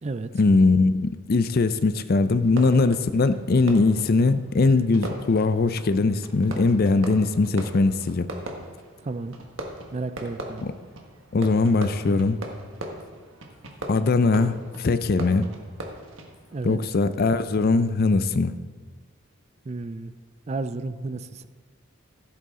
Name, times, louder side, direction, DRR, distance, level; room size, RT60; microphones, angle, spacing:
voice 1, 0.3-8.3 11.3-12.4 13.9-15.5 16.6-18.5, left 3 dB, 50° left, 12 dB, 0.5 m, -21 dB
Fireworks, 2.4-16.7, right 1 dB, 70° right, 1.5 m, -40 dB
voice 2, 9.0-9.4 9.9-10.6 16.5-16.8 19.6-20.1 20.5-21.5, right 3 dB, 35° right, 12 dB, 0.4 m, -32 dB
15.0 x 8.2 x 3.7 m, 1.5 s
head